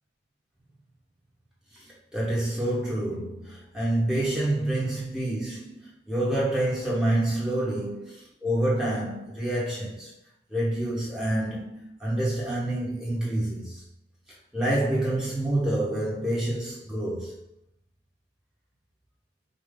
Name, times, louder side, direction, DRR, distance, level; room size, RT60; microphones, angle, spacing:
voice 1, 2.1-10.1 10.5-13.8 14.5-17.4, right 1 dB, 5° right, 1.2 m, -27 dB
5.1 x 2.4 x 3.7 m
head